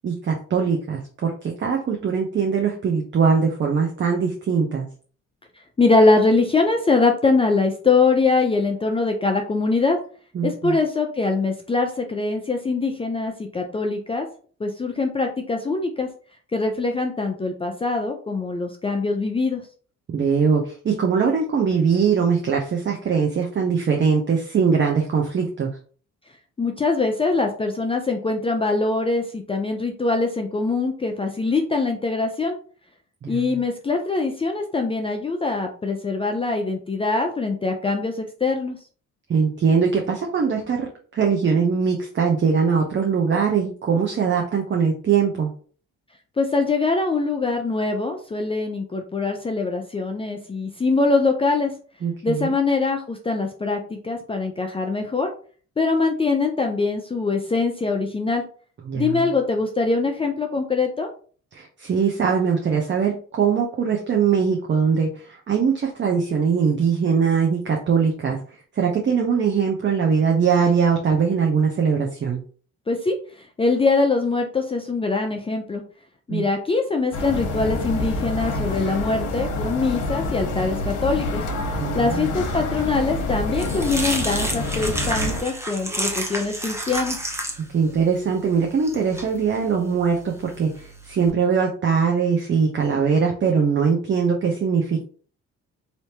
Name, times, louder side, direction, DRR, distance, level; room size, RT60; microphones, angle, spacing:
voice 1, 0.0-4.9 10.3-10.8 20.1-25.7 33.2-33.6 39.3-40.9 41.1-45.5 52.0-52.5 58.9-59.3 61.5-68.4 68.8-72.4 76.3-76.5 81.8-82.3 87.7-95.0, right 6 dB, 40° right, 1 dB, 0.7 m, -21 dB
voice 2, 5.8-10.0 10.4-14.3 14.6-16.1 16.5-19.6 26.6-32.6 33.3-38.8 46.4-51.7 52.2-55.3 55.8-58.4 58.9-61.1 72.9-73.1 73.6-75.8 76.3-81.4 81.9-87.2, left 3 dB, 20° left, 3 dB, 0.4 m, -23 dB
sound 1, 77.1-85.4, left 2 dB, 80° left, 0.9 m, -27 dB
sound 2, 83.0-91.3, right 1 dB, 10° right, 0.8 m, -31 dB
3.4 x 2.7 x 2.8 m, 0.42 s
cardioid pair, 90°, 30 cm